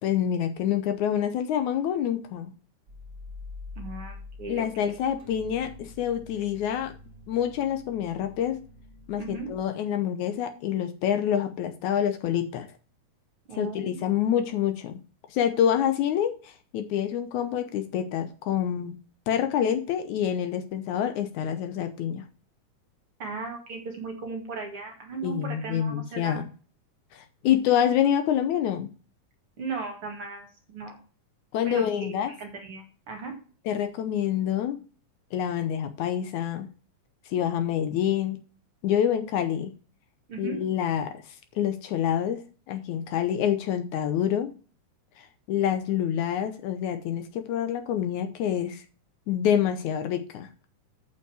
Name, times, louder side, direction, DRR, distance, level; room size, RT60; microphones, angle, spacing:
voice 1, 0.0-2.5 4.5-6.9 7.3-8.6 9.1-12.7 13.6-15.0 15.3-18.9 19.3-22.2 25.2-26.5 27.1-28.9 31.5-32.3 33.7-34.8 35.3-36.7 37.3-38.4 38.8-39.7 40.4-41.2 41.6-42.4 42.7-44.5 45.2-48.8 49.3-50.5, left 9 dB, 75° left, 8 dB, 2.1 m, -27 dB
sound 1, 2.9-9.6, left 3 dB, 30° right, 2.8 m, -45 dB
voice 2, 3.8-4.7 9.2-9.5 13.5-14.0 23.2-26.4 29.6-30.9 31.6-33.3 40.3-40.6, right 4 dB, 45° right, 2 dB, 2.8 m, -37 dB
8.2 x 5.8 x 6.1 m, 0.37 s
omnidirectional pair, 3.7 m